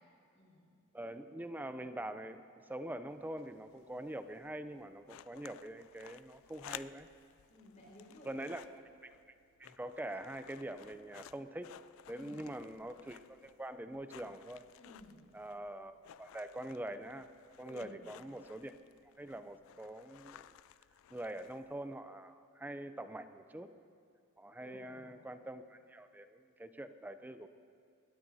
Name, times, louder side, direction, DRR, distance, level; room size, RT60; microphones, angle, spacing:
voice 1, 0.3-0.7 7.5-8.6 12.1-12.5 14.8-15.3 17.7-18.0 24.6-25.3, left 1 dB, 35° left, -4 dB, 4.6 m, -55 dB
voice 2, 0.9-7.1 8.2-8.6 9.0-9.2 9.6-11.8 12.1-14.7 15.3-17.3 17.6-18.7 19.2-20.4 21.1-23.7 24.4-27.5, right 1 dB, 10° right, 10 dB, 0.4 m, -44 dB
sound 1, 3.1-22.0, left 11 dB, 65° left, 0.3 m, -56 dB
22.0 x 18.0 x 2.7 m, 2.3 s
head